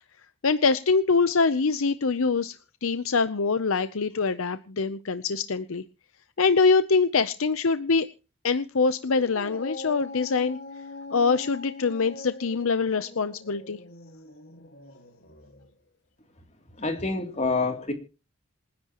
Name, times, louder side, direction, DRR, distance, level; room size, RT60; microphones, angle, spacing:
voice 1, 0.4-5.8 6.4-8.1 8.4-10.6 11.1-13.8, left 4 dB, 75° left, 12 dB, 0.7 m, -24 dB
Dog, 9.0-15.7, left 2 dB, 50° left, 1.9 m, -42 dB
voice 2, 16.8-17.9, left 3 dB, 35° left, 4 dB, 3.0 m, -27 dB
28.0 x 10.5 x 3.0 m, 0.33 s
head